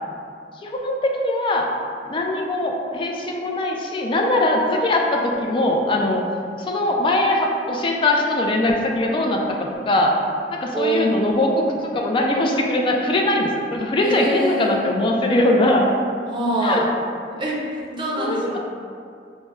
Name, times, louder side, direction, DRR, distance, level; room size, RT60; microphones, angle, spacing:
voice 1, 0.6-1.7 2.0-6.2 6.7-10.1 10.5-15.9 16.6-16.8 18.2-18.6, left 1 dB, 30° left, 0 dB, 0.3 m, -21 dB
voice 2, 10.7-11.8 14.0-14.9 16.3-16.9 17.3-18.6, right 1 dB, 30° right, -5 dB, 0.6 m, -25 dB
4.9 x 2.0 x 2.2 m, 2.3 s
head